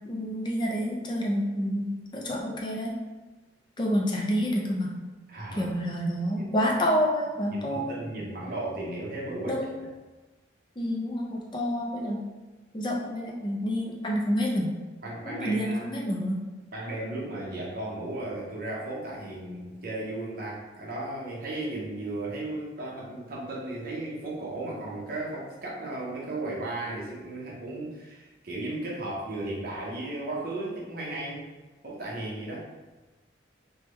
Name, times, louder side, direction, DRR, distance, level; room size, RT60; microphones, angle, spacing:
voice 1, 0.1-2.9 3.8-4.9 5.6-8.2 9.5-9.8 10.8-12.2 12.7-14.7 15.3-16.4, equal, 25° left, -2 dB, 0.4 m, -28 dB
voice 2, 5.3-5.7 6.4-6.5 7.7-9.6 15.0-15.9 16.7-31.5 31.8-32.7, right 2 dB, 50° right, -5 dB, 0.8 m, -35 dB
3.3 x 2.2 x 3.0 m, 1.2 s
head